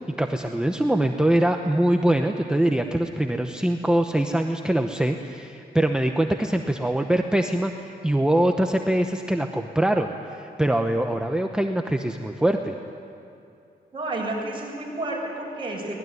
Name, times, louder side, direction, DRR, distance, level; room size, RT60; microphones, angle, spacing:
voice 1, 0.2-12.7, right 1 dB, 5° right, 4 dB, 0.9 m, -23 dB
voice 2, 13.9-16.0, right 2 dB, 30° right, -2 dB, 6.8 m, -30 dB
23.5 x 20.0 x 9.5 m, 2.6 s
wide cardioid pair, 115°, 17 cm